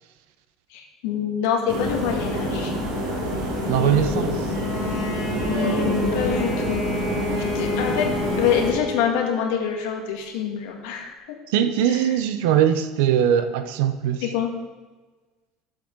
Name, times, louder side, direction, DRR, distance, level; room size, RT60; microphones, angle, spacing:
voice 1, 0.7-2.7 3.8-4.5 5.4-6.8 7.5-11.1 14.2-14.5, left 8 dB, 90° left, 1.9 m, -26 dB
sound 1, 1.7-8.7, equal, 75° right, 3.8 m, -27 dB
voice 2, 3.7-4.4 11.5-14.3, right 10 dB, 90° right, 0.8 m, -21 dB
Bowed string instrument, 4.5-9.6, left 1 dB, 20° left, 2.6 m, -30 dB
9.7 x 7.8 x 4.7 m
cardioid pair, 175°, 0 cm